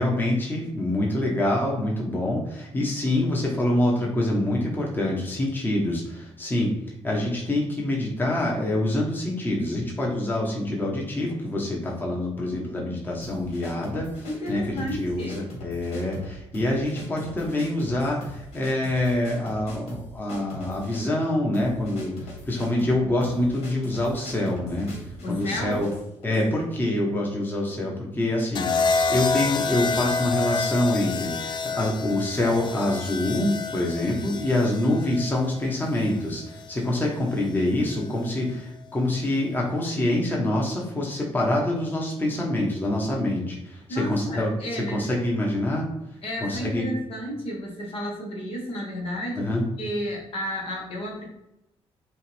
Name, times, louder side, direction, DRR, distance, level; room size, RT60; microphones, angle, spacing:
voice 1, 0.0-6.7 7.0-24.9 25.3-25.9 26.2-44.5 44.8-45.9 46.4-46.9 49.4-49.6, left 1 dB, 20° left, -2 dB, 1.1 m, -26 dB
sound 1, 13.2-26.5, equal, 85° left, 1.6 m, -41 dB
voice 2, 14.3-15.4 25.2-25.9 43.9-45.0 46.2-49.5 49.8-51.2, equal, 65° left, -1 dB, 1.4 m, -32 dB
sound 2, 28.5-36.7 37.9-38.3, left 4 dB, 45° left, 0.4 m, -28 dB
5.5 x 2.5 x 3.4 m, 0.83 s
cardioid pair, 95°, 11 cm